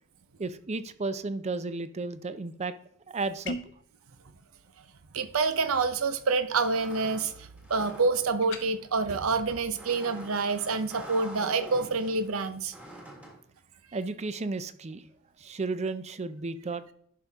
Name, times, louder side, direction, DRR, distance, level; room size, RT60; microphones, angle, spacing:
voice 1, 0.4-2.7 3.1-3.6 13.9-15.0 15.4-16.8, right 3 dB, 30° right, 13 dB, 0.5 m, -33 dB
sound 1, 3.4-3.8 8.4-8.7, left 2 dB, 60° left, 0.9 m, -36 dB
voice 2, 5.1-12.7, right 4 dB, 80° right, 11 dB, 0.8 m, -27 dB
sound 2, 5.9-13.4, equal, 5° right, 1.6 m, -47 dB
11.0 x 5.3 x 3.5 m, 0.68 s
head